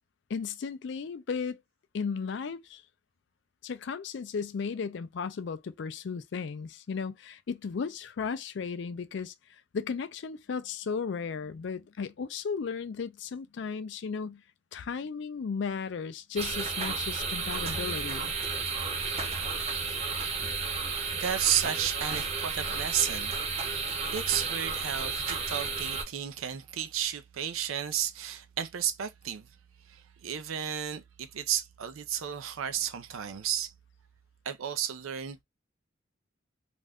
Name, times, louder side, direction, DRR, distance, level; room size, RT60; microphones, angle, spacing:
voice 1, 0.3-1.6 1.9-2.8 3.6-9.3 9.7-14.4 14.7-18.3, left 5 dB, 60° left, 0.4 m, -35 dB
sound 1, 16.4-26.0, right 4 dB, 30° right, 0.5 m, -32 dB
voice 2, 21.1-23.3 24.1-29.5 29.9-33.7 34.5-35.4, right 10 dB, 90° right, 0.5 m, -32 dB
2.5 x 2.2 x 3.4 m
head